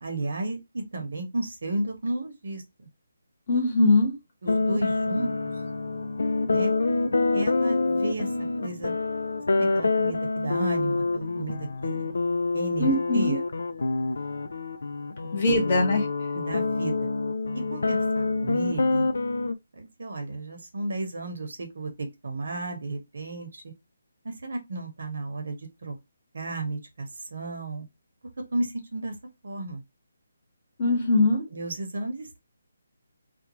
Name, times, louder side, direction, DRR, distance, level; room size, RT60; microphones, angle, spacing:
voice 1, 0.0-2.6 4.4-5.3 6.5-6.7 7.3-8.3 8.6-8.9 9.5-12.1 12.5-13.4 15.6-15.8 16.3-17.1 17.5-19.1 19.7-23.7 24.2-25.9 26.3-27.9 28.5-29.1 29.4-29.8 31.5-32.4, right 2 dB, 65° right, 1.0 m, -33 dB
voice 2, 3.5-4.1 12.8-13.4 15.3-16.0 30.8-31.4, left 2 dB, 35° left, 1.0 m, -21 dB
sound 1, 4.5-19.5, left 3 dB, 80° left, 0.3 m, -27 dB
2.5 x 2.2 x 3.0 m
hypercardioid pair, 170°, 0 cm